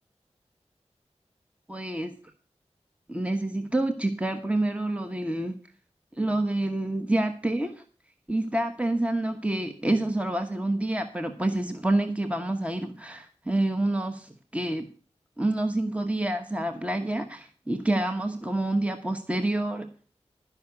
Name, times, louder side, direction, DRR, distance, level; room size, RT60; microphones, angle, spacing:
voice 1, 1.7-2.1 3.1-5.5 6.1-7.8 8.3-14.9 15.4-19.9, right 1 dB, 10° right, 6 dB, 1.1 m, -28 dB
12.0 x 5.8 x 8.2 m, 0.40 s
wide cardioid pair, 50°, 12 cm